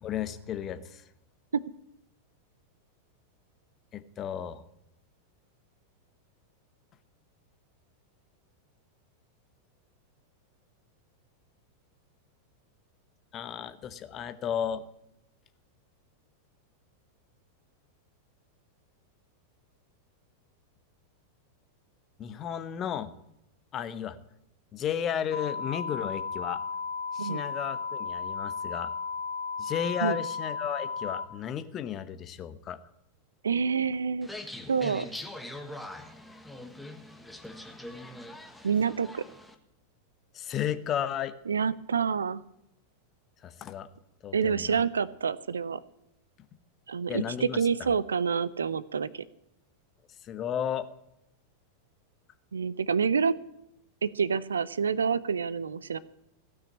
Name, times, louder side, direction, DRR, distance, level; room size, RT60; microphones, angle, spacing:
voice 1, 0.0-1.0 3.9-4.6 13.3-14.8 22.2-23.1 23.7-24.2 24.7-26.6 27.1-28.9 29.6-32.8 40.3-41.3 43.4-43.9 44.2-44.8 47.1-47.9 50.2-50.9, left 9 dB, 30° left, 12 dB, 1.0 m, -33 dB
sound 1, 25.3-31.3, left 5 dB, 55° left, 1.4 m, -34 dB
voice 2, 33.4-34.3 34.7-35.1 38.6-39.2 41.5-42.4 44.3-45.8 46.9-49.3 52.5-53.3 54.0-56.0, right 6 dB, 70° right, 19 dB, 0.5 m, -27 dB
sound 2, 34.2-39.5, left 1 dB, 5° left, 1.3 m, -43 dB
16.0 x 6.3 x 8.6 m, 0.81 s
figure-of-eight pair, 90°, 0 cm